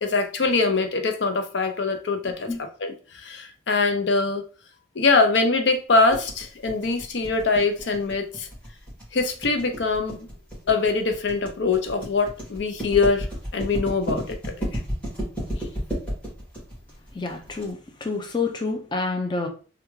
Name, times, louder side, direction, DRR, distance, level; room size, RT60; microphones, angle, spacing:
voice 1, 0.0-4.4 5.0-8.5 9.1-10.3 10.7-13.3 13.5-14.8, left 3 dB, 75° left, 0.5 m, -23 dB
voice 2, 2.2-2.6 17.1-19.5, left 3 dB, 25° left, 0.5 m, -28 dB
sound 1, 6.1-17.7, equal, 10° left, 1.7 m, -32 dB
3.5 x 2.3 x 3.1 m
head